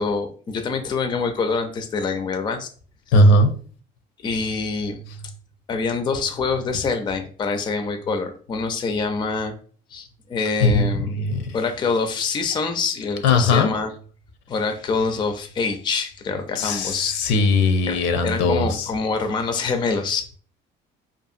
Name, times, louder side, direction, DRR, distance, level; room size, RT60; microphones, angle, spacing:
voice 1, 0.0-2.7 3.1-3.2 4.2-5.0 5.7-9.5 9.9-11.2 11.5-13.9 14.5-17.1 17.6-20.2, left 4 dB, 25° left, 7 dB, 0.4 m, -25 dB
voice 2, 3.1-3.5 10.6-11.4 13.2-13.7 16.6-18.7, left 2 dB, 80° left, 7 dB, 0.6 m, -18 dB
2.7 x 2.4 x 2.4 m, 0.44 s
cardioid pair, 130°, 19 cm